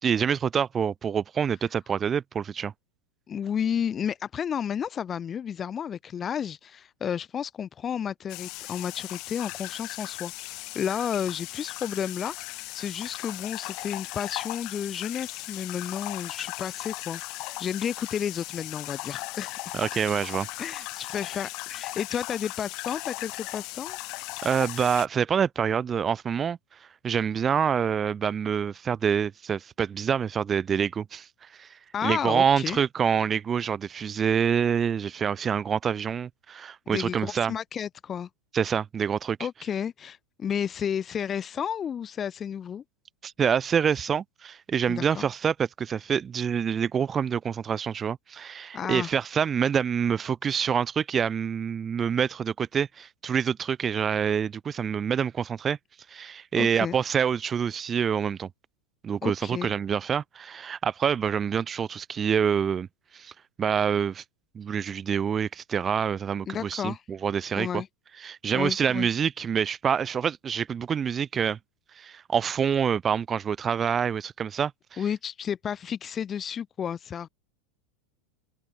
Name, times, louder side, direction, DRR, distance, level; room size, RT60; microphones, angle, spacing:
voice 1, 0.0-2.7 19.7-20.5 24.4-26.6 27.0-31.3 31.6-31.7 32.0-37.5 38.5-39.4 43.2-55.8 56.1-58.5 59.0-62.9 63.1-63.3 63.6-64.2 64.5-67.8 68.2-71.6 72.0-75.0, right 7 dB, 25° right, 5.1 m, -26 dB
voice 2, 3.3-19.7 20.6-24.0 31.9-32.8 36.9-38.3 39.4-42.8 44.9-45.3 48.7-49.1 56.6-56.9 59.2-59.7 66.5-67.0 67.6-67.9 68.5-69.1 75.0-77.3, left 8 dB, 30° left, 1.4 m, -32 dB
sound 1, 8.3-25.1, left 24 dB, 50° left, 5.5 m, -37 dB
open air
hypercardioid pair, 90°, 0 cm